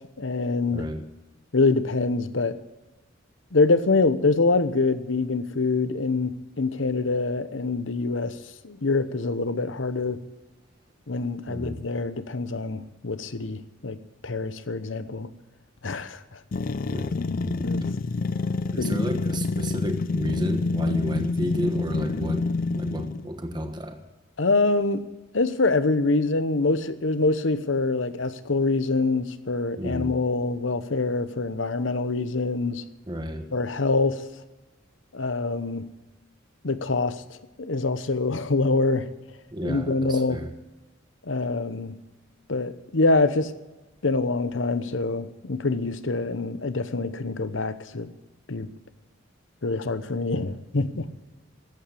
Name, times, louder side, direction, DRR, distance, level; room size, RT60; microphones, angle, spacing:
voice 1, 0.2-0.9 1.5-2.6 3.5-8.3 8.6-10.2 11.1-14.0 14.2-15.3 15.8-16.4 17.6-17.9 18.8-19.1 24.4-25.0 25.3-32.8 33.5-34.2 35.1-35.9 36.6-37.2 37.6-39.1 39.6-40.4 41.3-41.9 42.5-43.5 44.0-48.1 48.5-48.7 49.6-51.1, left 3 dB, 70° left, 12 dB, 1.0 m, -25 dB
voice 2, 0.7-1.0 11.5-11.8 16.9-17.1 17.4-17.7 18.7-22.4 22.8-24.0 29.8-30.2 33.1-33.5 39.5-40.5, equal, 25° right, 6 dB, 1.4 m, -32 dB
sound 1, 16.5-23.3, left 3 dB, 45° left, 0.5 m, -27 dB
14.0 x 8.9 x 8.4 m, 1.1 s
head